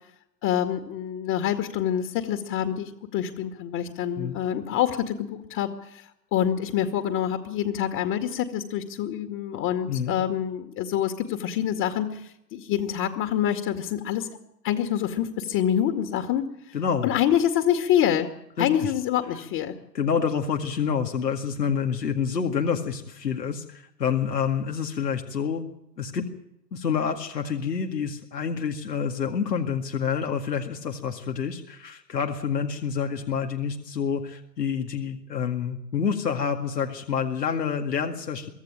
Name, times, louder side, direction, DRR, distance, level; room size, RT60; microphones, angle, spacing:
voice 1, 0.4-14.3 14.6-16.8 17.0-18.3 18.6-19.8, left 10 dB, 40° left, 7 dB, 2.3 m, -26 dB
voice 2, 16.7-17.1 18.6-18.9 19.9-25.7 26.0-26.3 26.7-38.5, left 7 dB, 80° left, 3 dB, 2.2 m, -28 dB
24.5 x 15.0 x 9.0 m, 0.82 s
figure-of-eight pair, 100°, 49 cm